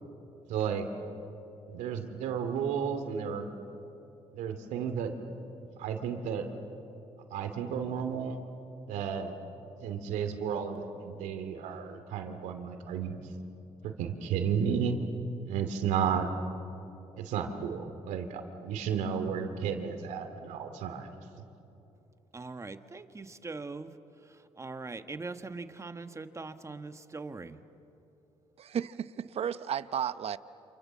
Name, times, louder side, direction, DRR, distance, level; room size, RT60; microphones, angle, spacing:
voice 1, 0.5-0.9 1.7-3.5 4.3-5.1 5.6-6.5 7.3-8.4 8.9-9.3 9.8-13.2 13.8-15.0 15.4-16.3 17.2-21.1, right 7 dB, 85° right, 6 dB, 2.6 m, -33 dB
voice 2, 22.3-23.9 24.6-27.6, right 3 dB, 25° right, 9 dB, 1.4 m, -41 dB
voice 3, 28.6-30.4, right 9 dB, 55° right, 14 dB, 0.8 m, -33 dB
28.5 x 27.5 x 7.5 m, 2.9 s
cardioid pair, 80°, 12 cm